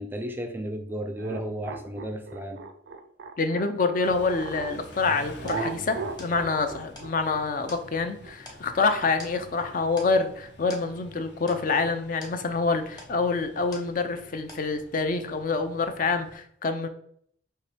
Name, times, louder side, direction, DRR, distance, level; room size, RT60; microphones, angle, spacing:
voice 1, 0.0-2.6, right 1 dB, 10° right, 5 dB, 0.4 m, -34 dB
sound 1, 1.1-4.8 5.4-9.9, right 4 dB, 70° right, 0.5 m, -38 dB
voice 2, 3.4-16.9, left 4 dB, 45° left, 8 dB, 0.5 m, -26 dB
Car / Idling / Accelerating revving vroom, 4.0-16.3, left 1 dB, 60° left, 0.9 m, -48 dB
sound 2, 5.5-14.2 14.5-15.1, left 1 dB, 25° left, 1.0 m, -49 dB
5.5 x 3.0 x 3.3 m, 0.64 s
head